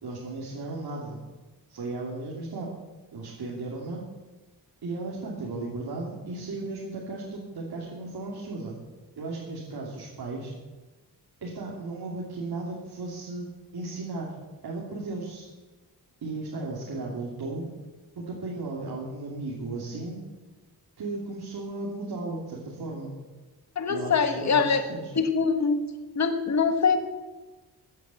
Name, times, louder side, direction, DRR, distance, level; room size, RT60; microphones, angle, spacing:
voice 1, 0.0-1.2 1.7-2.7 3.1-4.1 4.8-8.7 9.1-10.5 11.4-13.5 13.7-14.3 14.6-15.5 16.2-17.7 18.2-20.2 21.0-23.1 23.9-25.1, right 2 dB, 70° right, -4 dB, 3.0 m, -35 dB
voice 2, 23.8-24.8 25.2-25.8 26.2-27.0, left 5 dB, 45° left, 7 dB, 1.4 m, -23 dB
15.5 x 9.4 x 7.6 m, 1.2 s
wide cardioid pair, 165°, 38 cm